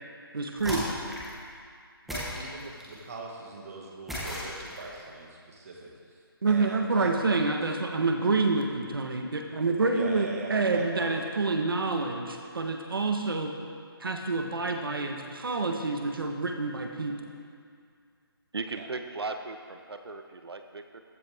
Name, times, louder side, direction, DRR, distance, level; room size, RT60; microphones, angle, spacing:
voice 1, 0.3-0.9 6.4-13.5 14.0-17.2, right 3 dB, 65° right, 3 dB, 1.5 m, -28 dB
sound 1, 0.6-1.4 2.1-3.0 4.1-5.0, left 1 dB, ahead, 1.3 m, -36 dB
voice 2, 2.1-6.2 6.5-7.6 9.9-11.2 18.7-18.9, right 3 dB, 35° right, -1 dB, 2.2 m, -41 dB
voice 3, 18.5-21.0, right 3 dB, 80° right, 7 dB, 1.4 m, -37 dB
15.0 x 14.0 x 3.7 m, 2.2 s
hypercardioid pair, 170°, 13 cm